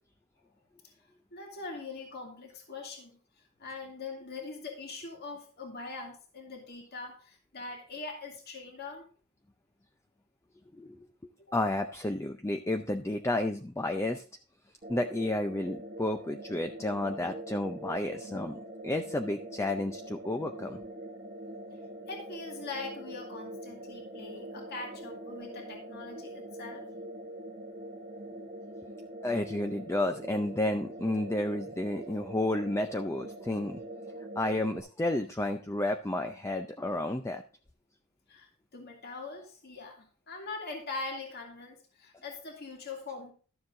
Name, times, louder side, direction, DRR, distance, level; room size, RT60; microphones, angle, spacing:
voice 1, 1.3-3.2 3.6-9.1 22.1-26.8 38.3-43.3, left 3 dB, 50° left, 1 dB, 2.4 m, -42 dB
voice 2, 11.5-14.2 14.9-20.8 29.2-33.8 34.4-37.4, left 1 dB, 15° left, 6 dB, 0.5 m, -31 dB
sound 1, 14.8-34.8, right 1 dB, 35° right, 1.1 m, -43 dB
12.5 x 7.1 x 3.8 m, 0.39 s
head